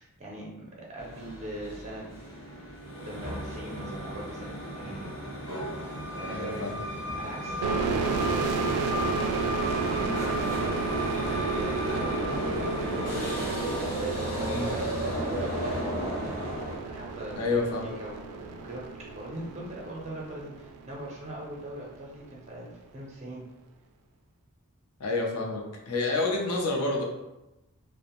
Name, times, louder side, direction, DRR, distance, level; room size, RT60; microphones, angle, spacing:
voice 1, 0.0-2.0 3.0-5.1 6.1-6.6 7.2-8.9 9.3-11.0 11.3-16.0 16.8-18.8 19.2-23.4 26.2-26.3, right 1 dB, 30° right, -2 dB, 0.5 m, -41 dB
sound 1, 1.0-16.8, equal, 65° left, 1.1 m, -34 dB
voice 2, 6.3-6.8 14.5-14.7 17.4-17.9 25.0-27.0, left 3 dB, 85° left, 0 dB, 0.5 m, -29 dB
sound 2, 7.6-21.1, right 5 dB, 90° right, 0.3 m, -32 dB
sound 3, 12.4-18.8 19.1-19.2, equal, 25° left, 0.5 m, -43 dB
2.5 x 2.0 x 2.9 m, 0.98 s
head